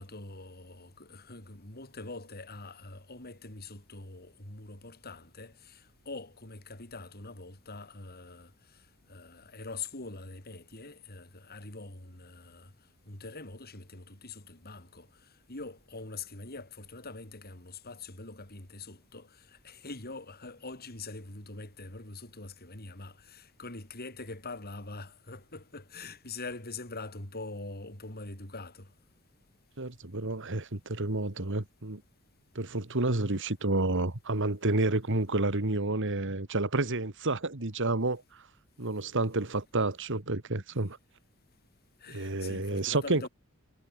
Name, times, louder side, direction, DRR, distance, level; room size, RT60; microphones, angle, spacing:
voice 1, 0.0-8.5 9.1-12.7 13.1-15.1 15.5-28.9 42.0-43.3, left 3 dB, 45° left, 5.4 m, -44 dB
voice 2, 29.8-32.0 32.6-38.4 38.8-41.0 42.1-43.3, right 2 dB, 60° right, 2.1 m, -30 dB
head